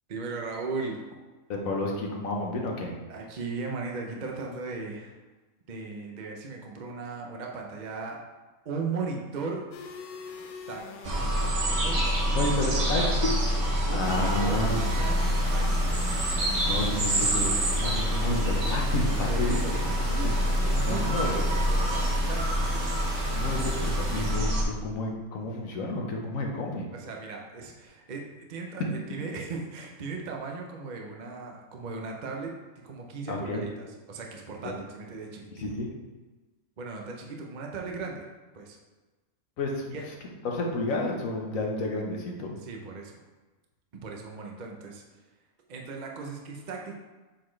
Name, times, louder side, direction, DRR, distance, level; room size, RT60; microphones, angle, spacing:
voice 1, 0.1-1.0 3.1-5.2 5.7-8.2 8.6-9.6 10.7-13.4 13.9-16.0 19.3-22.7 26.9-35.7 36.8-38.3 38.5-38.8 39.9-40.0 42.6-43.2 43.9-45.0 45.7-46.9, right 4 dB, 40° right, 1 dB, 0.7 m, -37 dB
voice 2, 1.5-2.9 12.3-13.0 13.9-14.8 16.6-19.6 20.2-20.3 20.8-21.3 23.3-26.9 28.8-28.9 33.3-33.6 34.6-34.7 35.6-35.9 39.6-40.0 40.4-42.5, left 2 dB, 80° left, 0 dB, 1.4 m, -30 dB
sound 1, 9.7-23.9, left 4 dB, 60° left, 0.5 m, -42 dB
sound 2, 11.0-24.6, equal, 60° right, 1.5 m, -26 dB
sound 3, 14.0-24.3, right 1 dB, 80° right, 2.0 m, -42 dB
7.9 x 4.2 x 3.2 m, 1.2 s
omnidirectional pair, 1.4 m